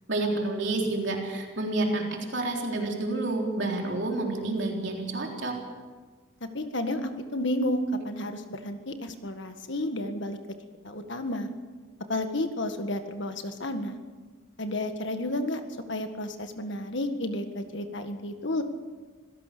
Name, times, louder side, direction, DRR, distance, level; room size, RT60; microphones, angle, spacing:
voice 1, 0.1-5.6, right 2 dB, 55° right, 0 dB, 3.7 m, -29 dB
voice 2, 6.4-10.4 10.8-11.5 12.1-14.0 14.6-15.6 15.9-18.6, left 1 dB, 55° left, 7 dB, 1.8 m, -31 dB
25.5 x 17.0 x 6.9 m, 1.4 s
head